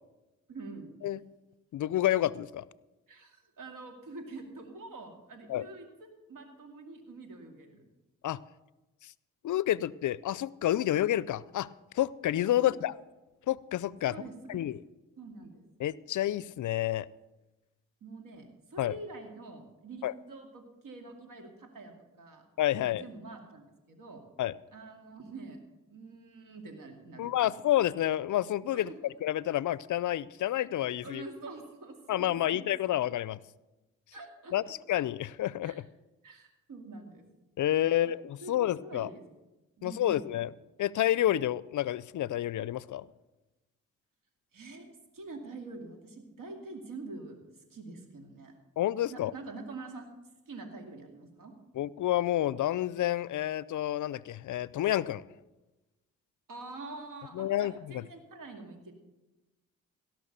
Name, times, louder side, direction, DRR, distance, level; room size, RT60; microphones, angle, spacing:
voice 1, 0.5-0.9 3.1-7.8 12.5-12.8 14.0-14.4 15.2-15.6 18.0-22.4 22.8-24.2 24.7-25.6 25.9-27.5 28.7-29.1 31.0-32.6 34.1-34.7 35.6-35.8 36.2-37.3 37.9-38.1 38.4-39.2 39.8-40.3 44.5-47.4 47.7-48.5 49.1-50.1 50.5-51.5 56.5-58.9, right 3 dB, 65° right, 2.4 m, -46 dB
voice 2, 1.7-2.6 5.5-5.6 8.2-8.4 9.0-9.1 9.4-11.7 11.9-12.9 13.5-14.1 14.5-14.8 15.8-17.1 18.8-18.9 20.0-20.1 22.6-23.0 24.4-24.5 27.2-28.9 29.2-31.2 32.1-33.4 34.5-35.8 37.6-39.1 39.8-40.5 40.8-43.1 48.8-49.3 51.8-55.2 57.4-58.0, left 13 dB, 60° left, 0.5 m, -29 dB
17.0 x 6.1 x 6.6 m
supercardioid pair, 45°, 35 cm